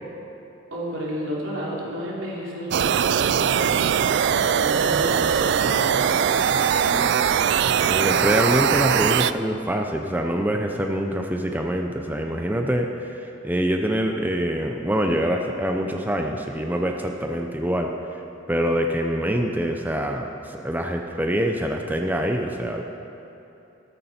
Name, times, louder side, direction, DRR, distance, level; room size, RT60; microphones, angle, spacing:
voice 1, 0.7-4.2 4.6-7.5, equal, 90° right, -4 dB, 3.1 m, -32 dB
sound 1, 2.7-9.3, right 8 dB, 60° right, 0.3 m, -21 dB
voice 2, 7.9-17.9 18.5-22.8, equal, 10° right, 3 dB, 0.6 m, -25 dB
13.5 x 13.5 x 4.3 m, 2.9 s
head